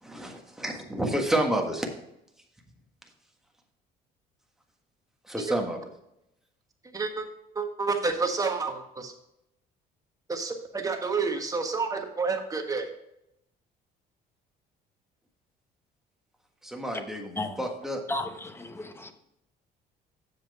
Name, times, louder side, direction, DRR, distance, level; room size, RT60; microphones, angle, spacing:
voice 1, 0.0-1.9 5.3-5.8 16.6-18.0, right 1 dB, 5° right, 1 dB, 1.5 m, -29 dB
voice 2, 6.9-7.3 7.5-9.1 10.3-12.9, right 4 dB, 20° right, 4 dB, 1.4 m, -29 dB
voice 3, 18.1-19.1, left 2 dB, 15° left, 8 dB, 0.9 m, -34 dB
7.6 x 7.2 x 4.3 m, 0.82 s
cardioid pair, 110°, 17 cm